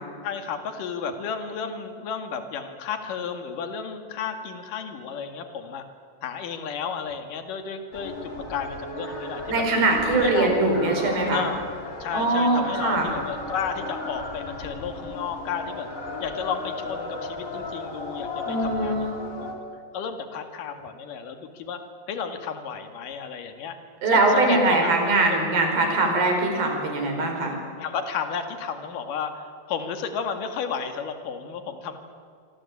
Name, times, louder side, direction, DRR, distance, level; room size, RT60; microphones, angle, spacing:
voice 1, 0.2-5.8 6.2-9.6 10.1-10.7 11.3-11.6 12.0-15.9 16.2-19.1 19.4-19.6 19.9-21.8 22.1-23.8 24.1-24.9 27.8-32.0, left 6 dB, 55° left, 7 dB, 3.2 m, -32 dB
sound 1, 7.9-19.5, left 2 dB, 20° left, 3.8 m, -34 dB
voice 2, 9.5-11.4 12.1-13.1 18.5-19.2 24.0-27.5, right 2 dB, 55° right, 3 dB, 6.8 m, -22 dB
26.5 x 26.0 x 8.7 m, 2.3 s
omnidirectional pair, 5.1 m